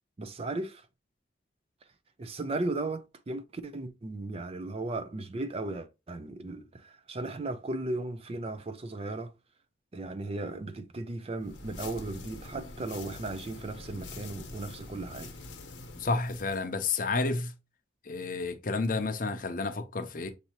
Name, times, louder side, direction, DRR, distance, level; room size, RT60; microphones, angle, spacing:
voice 1, 0.2-0.9 2.2-9.3 9.9-15.3, right 2 dB, 30° right, 0.4 m, -36 dB
sound 1, 11.4-16.7, left 2 dB, 80° left, 0.9 m, -45 dB
voice 2, 16.0-17.5 18.0-20.3, left 3 dB, 45° left, 0.6 m, -30 dB
6.6 x 2.7 x 2.9 m
head